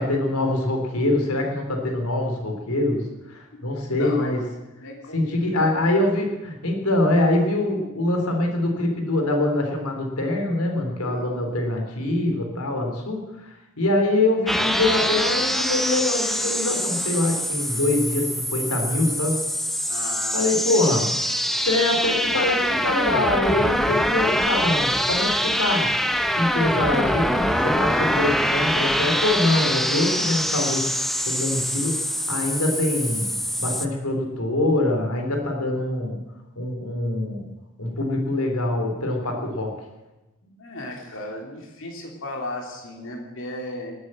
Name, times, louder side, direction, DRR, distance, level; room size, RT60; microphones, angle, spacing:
voice 1, 0.0-4.4 5.1-13.5 13.8-19.4 20.3-21.1 21.6-25.9 26.3-27.3 27.6-30.9 31.2-33.3 33.6-36.2 36.6-37.4 37.8-39.7, left 2 dB, 85° left, 3 dB, 3.6 m, -24 dB
voice 2, 4.0-4.5 4.8-5.2 5.5-5.8 11.0-11.3 19.9-20.8 21.5-21.7 40.4-43.9, left 2 dB, 60° left, 1 dB, 3.0 m, -35 dB
sound 1, 14.5-33.9, equal, ahead, 0.8 m, -24 dB
20.0 x 9.5 x 7.7 m, 1.1 s
head